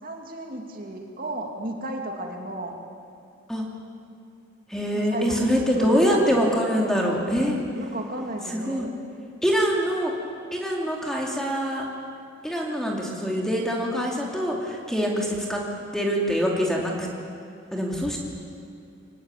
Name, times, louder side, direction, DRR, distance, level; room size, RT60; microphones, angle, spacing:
voice 1, 0.0-2.8 4.9-5.4 5.8-6.9 7.7-8.9, right 1 dB, 45° right, 1 dB, 2.6 m, -34 dB
voice 2, 4.7-7.6 8.5-8.9 9.4-10.1 10.5-11.8 12.4-15.6 15.9-17.1 17.7-18.2, equal, 5° left, -2 dB, 3.1 m, -24 dB
24.5 x 19.5 x 9.3 m, 2.5 s
head